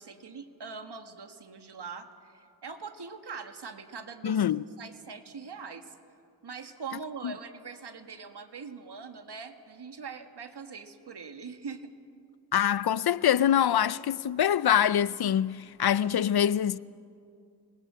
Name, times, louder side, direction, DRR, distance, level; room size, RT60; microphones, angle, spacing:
voice 1, 0.0-4.5 4.8-6.0 6.4-11.9, right 5 dB, 65° right, 1.8 m, -42 dB
voice 2, 4.2-4.6 7.2-7.3 12.5-16.8, left 10 dB, 60° left, 0.6 m, -24 dB
27.0 x 20.0 x 7.5 m
wide cardioid pair, 80°, 43 cm